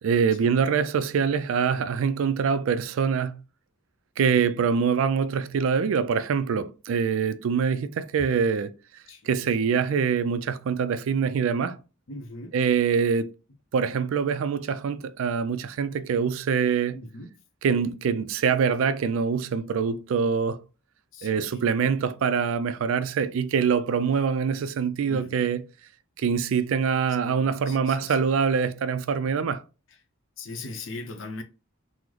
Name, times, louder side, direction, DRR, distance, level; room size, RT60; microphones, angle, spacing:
voice 1, 0.0-3.4 4.2-8.7 9.2-11.8 12.5-13.3 13.7-17.0 17.6-20.6 21.2-25.7 26.2-29.6, right 6 dB, 70° right, 0.3 m, -24 dB
voice 2, 4.2-4.5 9.1-9.5 12.1-12.5 16.9-17.3 21.1-21.7 25.1-25.4 27.2-28.2 30.4-31.4, left 2 dB, 60° left, 0.6 m, -40 dB
3.7 x 2.0 x 3.1 m
head